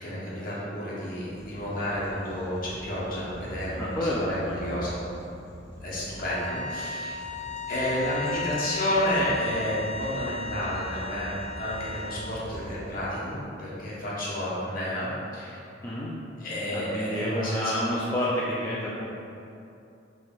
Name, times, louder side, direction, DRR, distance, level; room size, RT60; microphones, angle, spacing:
voice 1, 0.0-5.0 5.8-7.2 7.7-15.1 15.3-15.6 16.4-17.8, equal, 50° left, -8 dB, 1.1 m, -31 dB
sound 1, 1.3-13.1, equal, 30° left, 1.2 m, -44 dB
voice 2, 3.8-4.5 15.8-16.1 16.7-19.1, left 1 dB, 15° left, -8 dB, 0.4 m, -29 dB
sound 2, 6.2-12.3, left 4 dB, 50° right, 1.1 m, -36 dB
5.2 x 3.1 x 2.4 m, 2.6 s
head